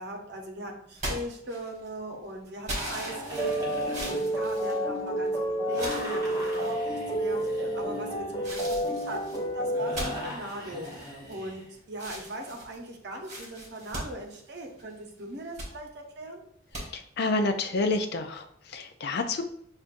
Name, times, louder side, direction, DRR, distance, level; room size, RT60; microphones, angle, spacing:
voice 1, 0.0-16.4, right 1 dB, 55° right, 2 dB, 0.8 m, -39 dB
sound 1, 0.9-2.0 2.7-5.3 5.7-6.7 7.4-7.8 8.4-11.6 11.9-14.9 15.3-15.7 16.7-16.8, right 1 dB, 35° right, 1.3 m, -39 dB
sound 2, 2.7-5.1 5.7-11.7, equal, 20° right, 1.2 m, -41 dB
sound 3, 3.4-10.3, right 1 dB, 20° left, 0.9 m, -30 dB
voice 2, 16.9-19.4, left 3 dB, 55° left, 6 dB, 0.4 m, -29 dB
6.5 x 2.5 x 2.5 m, 0.68 s
head